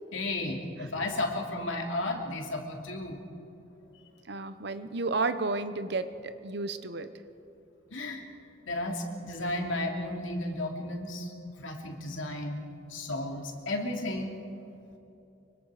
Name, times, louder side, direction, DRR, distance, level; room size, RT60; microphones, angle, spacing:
voice 1, 0.1-3.2 7.9-8.2 8.7-11.3 11.6-12.6 12.9-14.4, left 1 dB, 75° left, 2 dB, 2.9 m, -33 dB
voice 2, 4.3-6.1 6.4-7.1, right 3 dB, 55° right, 11 dB, 0.9 m, -31 dB
24.5 x 24.0 x 5.0 m, 2.9 s
head